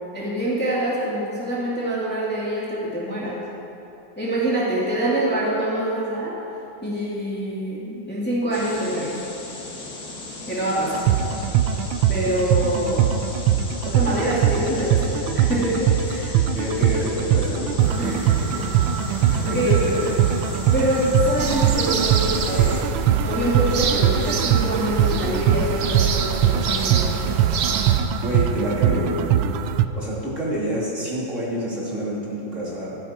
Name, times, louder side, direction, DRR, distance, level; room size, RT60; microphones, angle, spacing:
voice 1, 0.1-3.4 4.2-6.3 6.8-9.2 10.5-11.1 12.1-13.1 13.8-16.4 18.0-18.3 19.1-19.8 20.7-22.8 23.2-27.4, right 1 dB, 5° left, -7 dB, 2.3 m, -25 dB
sound 1, 8.5-22.8, left 2 dB, 50° left, 2.5 m, -36 dB
sound 2, 10.9-29.9, right 10 dB, 85° right, 1.4 m, -21 dB
voice 2, 16.5-18.0 18.5-18.7 19.3-20.1 28.2-29.3 29.9-33.0, equal, 35° right, -6 dB, 3.2 m, -27 dB
sound 3, 21.4-28.0, right 5 dB, 60° right, 1.3 m, -27 dB
15.0 x 14.5 x 4.4 m, 2.9 s
omnidirectional pair, 2.1 m